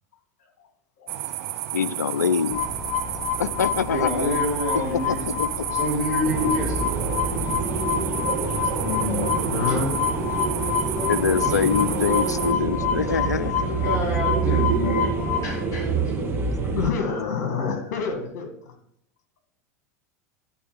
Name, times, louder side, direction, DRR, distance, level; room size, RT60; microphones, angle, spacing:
voice 1, 0.4-0.7 1.0-1.2 1.5-1.6 8.8-10.0 16.2-18.8, left 6 dB, 60° left, 5 dB, 1.9 m, -29 dB
sound 1, 1.1-12.5, right 13 dB, 60° right, 0.6 m, -32 dB
voice 2, 1.7-2.6 3.4-4.4 4.9-5.8 6.4-6.6 11.1-13.9, left 6 dB, 85° left, 16 dB, 0.4 m, -25 dB
sound 2, 2.5-15.6, left 7 dB, 15° left, 1.4 m, -28 dB
voice 3, 3.9-5.3 5.8-6.7 13.8-15.1 15.4-15.8, left 1 dB, 40° left, -3 dB, 3.9 m, -27 dB
sound 3, 6.2-16.9, right 4 dB, 25° right, 1.5 m, -27 dB
11.0 x 4.6 x 5.1 m, 0.72 s
hypercardioid pair, 85°, 9 cm